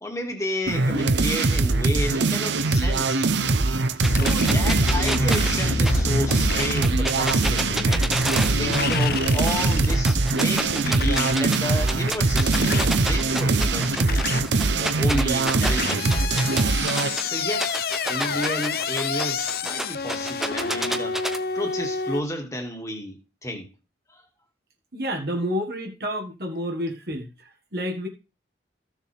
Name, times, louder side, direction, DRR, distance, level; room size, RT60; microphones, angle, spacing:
voice 1, 0.0-3.3 4.0-8.2 8.6-14.4 14.8-16.5 17.2-21.2 21.5-23.7 24.1-24.2, left 1 dB, 15° left, 2.0 m, -31 dB
sound 1, 0.7-17.2, right 3 dB, 85° right, 0.8 m, -22 dB
sound 2, 4.0-22.2, left 4 dB, 55° left, 0.8 m, -29 dB
sound 3, 4.0-9.2 9.5-11.6 11.9-17.2 17.6-21.4, equal, ahead, 0.9 m, -29 dB
voice 2, 24.9-28.1, equal, 60° right, 1.7 m, -29 dB
14.5 x 7.2 x 3.5 m
head